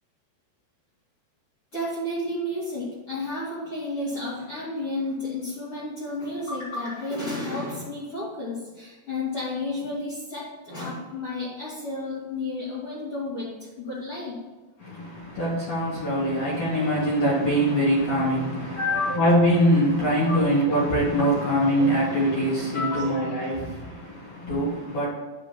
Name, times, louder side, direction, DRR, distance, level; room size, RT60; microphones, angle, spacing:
voice 1, 1.7-14.4 18.7-19.2 20.3-20.5 21.7-24.0, left 2 dB, 40° left, 2.7 m, -32 dB
voice 2, 14.8-18.8 19.2-25.1, equal, 55° left, 2.6 m, -23 dB
10.5 x 8.5 x 2.8 m
omnidirectional pair, 4.9 m